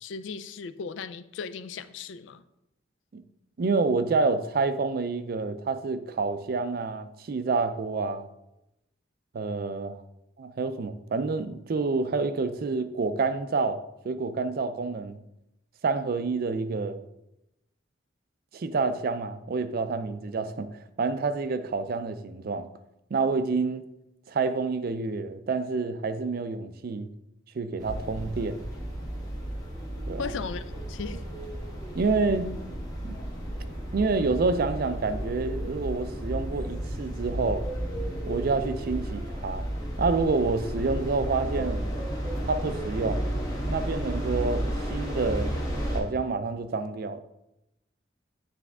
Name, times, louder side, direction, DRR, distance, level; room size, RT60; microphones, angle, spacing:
voice 1, 0.0-2.4 30.2-31.3, left 5 dB, 75° left, 0.4 m, -37 dB
voice 2, 3.6-8.3 9.3-10.0 10.4-15.2 15.8-17.1 18.5-22.7 23.1-23.9 24.3-27.1 27.5-28.6 30.1-30.2 31.9-32.5 33.0-33.2 33.9-37.6 38.3-39.6 40.0-41.8 42.5-43.3 43.7-45.5 45.9-47.2, right 4 dB, 50° right, 0.4 m, -28 dB
sound 1, 27.8-46.0, right 1 dB, 20° left, 1.2 m, -33 dB
9.3 x 3.4 x 3.5 m
head